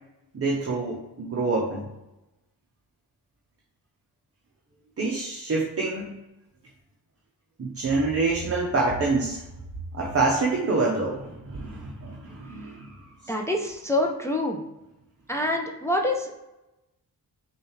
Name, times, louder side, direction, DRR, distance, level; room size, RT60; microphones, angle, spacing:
voice 1, 0.3-1.9 5.0-6.2 7.6-9.4 9.9-13.3, right 3 dB, 35° right, -2 dB, 0.8 m, -26 dB
voice 2, 13.3-14.6 15.3-16.4, left 1 dB, 5° left, 0 dB, 0.5 m, -26 dB
6.0 x 2.5 x 3.1 m, 0.96 s
wide cardioid pair, 110°, 39 cm